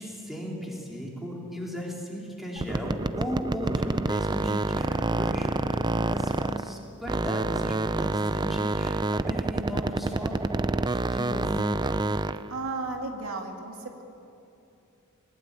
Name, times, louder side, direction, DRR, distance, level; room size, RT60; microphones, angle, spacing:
voice 1, 0.0-10.3 10.9-11.7, equal, ahead, -3 dB, 3.7 m, -36 dB
sound 1, 2.6-6.8 7.1-12.5, right 2 dB, 20° right, 0.5 m, -27 dB
voice 2, 12.5-14.0, right 3 dB, 80° right, 3 dB, 2.2 m, -34 dB
20.0 x 20.0 x 9.0 m, 2.7 s
head